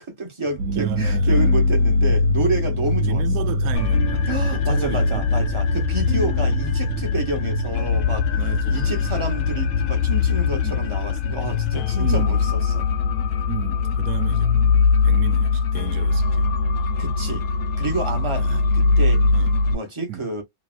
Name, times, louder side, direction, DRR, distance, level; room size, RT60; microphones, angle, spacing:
voice 1, 0.0-3.2 4.3-8.2 8.7-12.4 12.7-12.9 17.0-17.4 17.8-18.5 18.7-19.2 19.6-20.4, right 2 dB, 20° right, 1.0 m, -29 dB
sound 1, 0.6-15.7 15.9-17.1 17.4-17.5 17.9-18.5, left 2 dB, 90° right, 1.2 m, -25 dB
voice 2, 0.7-1.5 3.0-5.3 5.7-5.8 6.2-6.3 8.4-9.3 10.1-10.3 10.6-10.8 12.0-12.4 13.5-14.7 15.0-16.5 18.4-18.6 19.3-19.5 20.1-20.2, right 12 dB, 70° right, 0.9 m, -33 dB
sound 2, 1.4-8.5, left 18 dB, 85° left, 0.5 m, -40 dB
sound 3, 3.7-19.7, left 4 dB, 65° left, 0.8 m, -22 dB
3.1 x 2.8 x 2.5 m
omnidirectional pair, 1.8 m